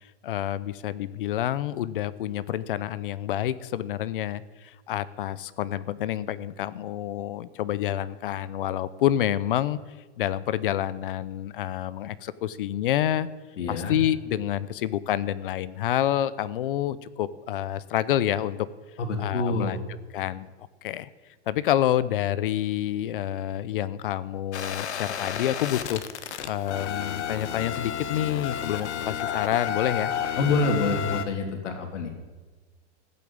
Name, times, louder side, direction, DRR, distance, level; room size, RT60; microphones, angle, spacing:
voice 1, 0.2-9.8 10.2-13.3 13.7-18.7 19.2-19.8 20.1-20.5 20.8-21.1 21.5-26.0 26.5-30.1, left 12 dB, 50° left, 17 dB, 0.7 m, -28 dB
voice 2, 13.6-14.0 19.0-19.8 30.4-32.1, left 3 dB, 85° left, 4 dB, 3.0 m, -27 dB
sound 1, 24.5-31.3, left 8 dB, 70° left, 1.4 m, -31 dB
15.0 x 8.6 x 8.8 m, 1.3 s
supercardioid pair, 180°, 35 cm